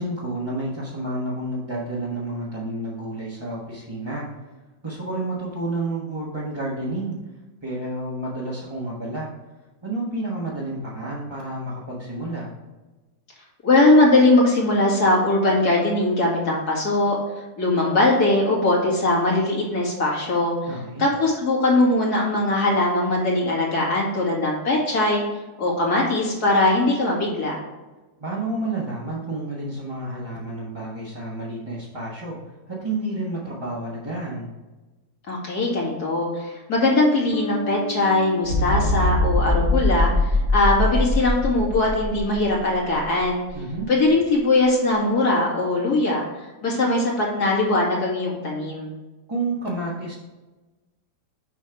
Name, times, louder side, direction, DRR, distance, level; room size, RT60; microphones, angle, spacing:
voice 1, 0.0-4.3 4.8-7.2 7.6-9.3 9.8-12.5 20.7-21.1 28.2-32.4 32.7-34.5 43.5-43.9 49.3-50.1, right 2 dB, 20° right, -7 dB, 1.1 m, -30 dB
voice 2, 13.6-17.2 17.6-20.6 21.0-25.2 25.6-27.6 35.3-43.4 43.9-48.9, left 2 dB, 60° left, -3 dB, 2.6 m, -20 dB
sound 1, 37.3-40.7, left 5 dB, 85° left, 0.6 m, -35 dB
sound 2, 38.4-42.5 43.0-43.2, left 2 dB, 75° right, 2.5 m, -22 dB
7.1 x 5.5 x 3.4 m, 1.2 s
omnidirectional pair, 1.9 m